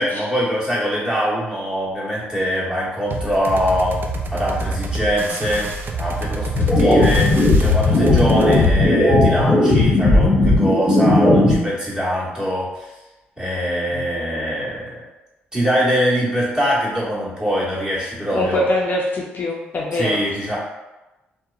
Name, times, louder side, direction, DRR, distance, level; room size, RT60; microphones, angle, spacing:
voice 1, 0.0-3.9 4.3-5.7 6.0-12.9 13.4-15.0 15.5-18.6 19.9-20.6, equal, 15° right, -8 dB, 1.3 m, -23 dB
sound 1, 3.1-8.7, right 2 dB, 50° right, 0.4 m, -27 dB
sound 2, 6.5-11.5, left 2 dB, 15° left, 0.9 m, -15 dB
voice 2, 18.3-20.2, left 1 dB, 45° left, -2 dB, 0.5 m, -23 dB
2.8 x 2.1 x 2.4 m, 1.1 s
supercardioid pair, 55°, 4 cm